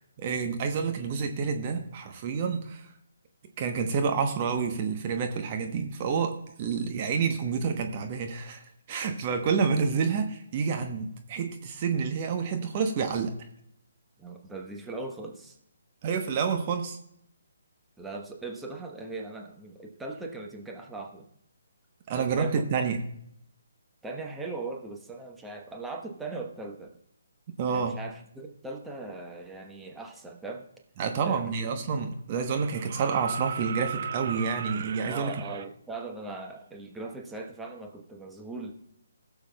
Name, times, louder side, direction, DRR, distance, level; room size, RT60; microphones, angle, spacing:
voice 1, 0.2-2.9 3.6-8.6 8.9-13.3 16.0-17.0 22.1-23.0 27.6-28.0 31.0-35.3, right 5 dB, 35° right, 5 dB, 1.0 m, -28 dB
voice 2, 14.2-15.6 18.0-21.3 22.1-22.7 24.0-26.9 27.7-30.6 31.2-31.5 31.8-31.9 35.1-38.7, right 3 dB, 5° right, 0 dB, 1.0 m, -39 dB
sound 1, 32.4-35.7 37.4-37.5, right 7 dB, 50° right, 0.3 m, -36 dB
20.0 x 7.0 x 2.3 m, 0.75 s
figure-of-eight pair, 140°, 0 cm